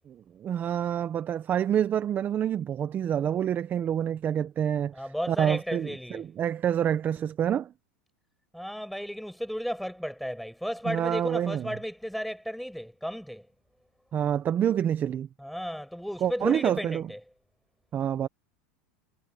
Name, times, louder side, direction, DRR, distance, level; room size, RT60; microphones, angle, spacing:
voice 1, 0.1-7.7 10.8-11.8 14.1-15.3 16.2-17.1 17.9-18.3, right 9 dB, 35° right, 1.3 m, -27 dB
voice 2, 4.9-6.2 8.5-13.5 15.4-17.2, equal, ahead, 6.4 m, -34 dB
hypercardioid pair, 105°, 6 cm